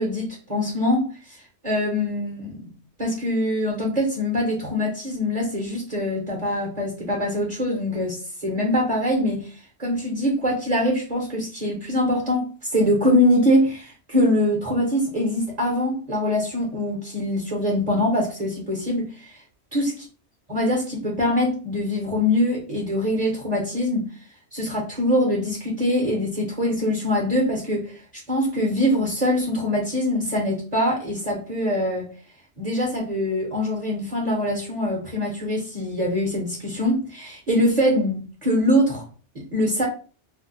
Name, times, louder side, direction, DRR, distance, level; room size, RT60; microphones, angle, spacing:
voice 1, 0.0-2.6 3.0-19.4 19.7-19.9 20.5-24.1 24.5-32.1 32.6-39.0 39.3-39.9, left 1 dB, 40° right, -1 dB, 0.8 m, -23 dB
2.5 x 2.0 x 3.9 m, 0.38 s
omnidirectional pair, 1.2 m